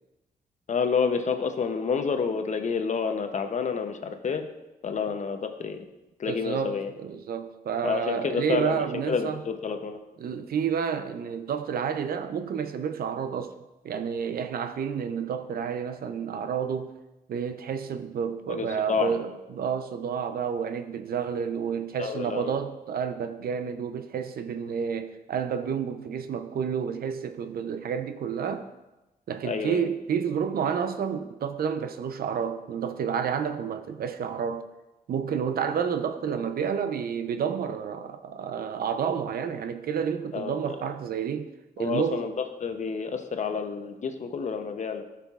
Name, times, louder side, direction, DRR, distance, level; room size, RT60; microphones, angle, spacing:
voice 1, 0.7-4.4 4.8-5.9 6.2-6.9 7.8-10.0 18.5-19.1 22.0-22.5 29.4-29.9 40.3-40.8 41.8-42.3 42.6-45.0, left 5 dB, 50° left, 0.7 m, -29 dB
voice 2, 6.3-9.4 10.2-13.5 13.8-16.9 17.3-28.7 29.3-34.7 35.1-41.5 41.8-42.2, right 7 dB, 70° right, 0.5 m, -30 dB
12.0 x 5.7 x 2.4 m
cardioid pair, 110°, 16 cm